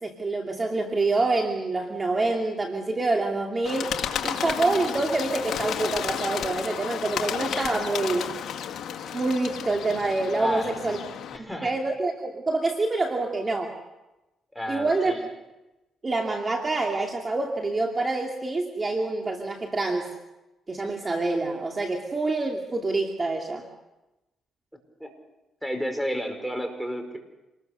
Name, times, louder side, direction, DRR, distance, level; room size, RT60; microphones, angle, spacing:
voice 1, 0.0-3.9 4.2-8.3 9.1-11.0 11.4-13.7 14.7-15.1 16.0-20.1 20.7-23.6, right 2 dB, 30° right, 2 dB, 2.5 m, -26 dB
Bird, 3.6-11.4, left 8 dB, 70° left, 1.9 m, -32 dB
voice 2, 10.4-11.0 11.3-11.7 14.6-15.3 25.0-25.1 25.6-27.2, equal, ahead, 6 dB, 5.3 m, -31 dB
27.0 x 20.5 x 6.8 m, 0.99 s
cardioid pair, 90°, 0 cm